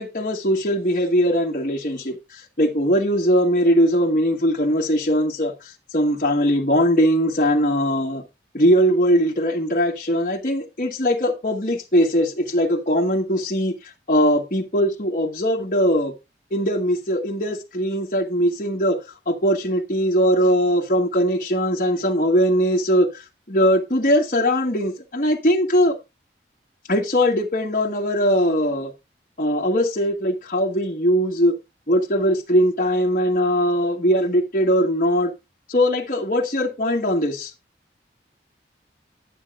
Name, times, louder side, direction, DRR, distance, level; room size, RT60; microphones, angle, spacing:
voice 1, 0.0-8.2 8.5-13.7 14.1-16.1 16.5-19.0 19.3-26.0 26.9-28.9 29.4-31.5 31.9-35.3 35.7-37.5, equal, 45° left, 1.6 m, -20 dB
9.8 x 9.0 x 2.5 m
head